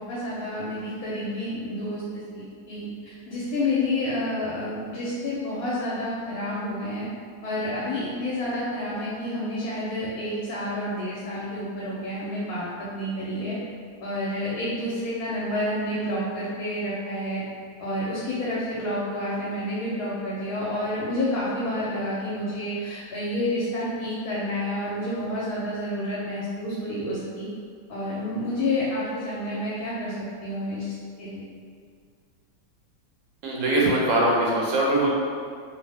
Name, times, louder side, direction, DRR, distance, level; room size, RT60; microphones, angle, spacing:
voice 1, 0.0-7.1 7.4-13.6 14.0-17.4 17.8-27.5 27.9-30.1 30.4-30.9 31.2-31.4, left 1 dB, 85° left, -8 dB, 1.2 m, -29 dB
voice 2, 33.4-35.1, right 1 dB, 65° right, -4 dB, 0.9 m, -22 dB
2.7 x 2.1 x 3.3 m, 2.1 s
omnidirectional pair, 1.5 m